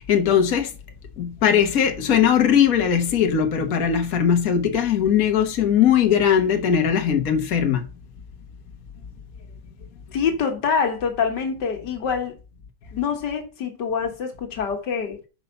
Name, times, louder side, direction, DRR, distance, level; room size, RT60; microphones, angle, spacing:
voice 1, 0.1-0.7 1.2-7.8, left 8 dB, 60° left, 1.6 m, -19 dB
voice 2, 10.1-12.4 12.9-15.2, left 6 dB, 85° left, 2.1 m, -25 dB
5.8 x 5.4 x 6.7 m
omnidirectional pair, 1.8 m